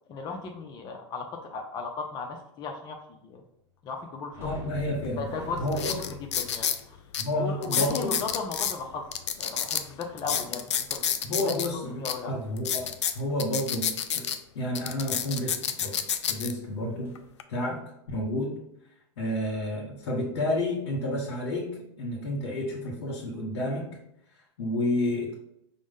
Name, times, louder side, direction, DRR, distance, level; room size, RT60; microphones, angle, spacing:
voice 1, 0.1-3.4 3.8-4.5 5.2-5.6 6.0-7.0 7.4-9.1 9.4-11.5 12.0-12.3, left 4 dB, 30° left, 2 dB, 0.5 m, -36 dB
sound 1, 4.3-9.7 17.0-17.2 17.6-17.7, left 2 dB, 15° right, 0.9 m, -44 dB
voice 2, 4.4-5.3 5.6-6.1 7.2-8.2 11.2-12.9 13.1-14.3 14.5-16.0 16.3-17.1 17.5-17.8 18.1-18.6 19.2-21.7 22.0-23.9 24.6-25.3, left 1 dB, 75° left, -5 dB, 1.1 m, -30 dB
sound 2, 5.0-5.1 5.7-6.8 7.1-7.2 7.6-8.7 9.1-11.7 12.0-12.1 12.6-14.4 14.7-16.5 17.1-17.4, left 8 dB, 90° left, 0.4 m, -29 dB
4.9 x 2.0 x 3.6 m, 0.78 s
hypercardioid pair, 110°, 14 cm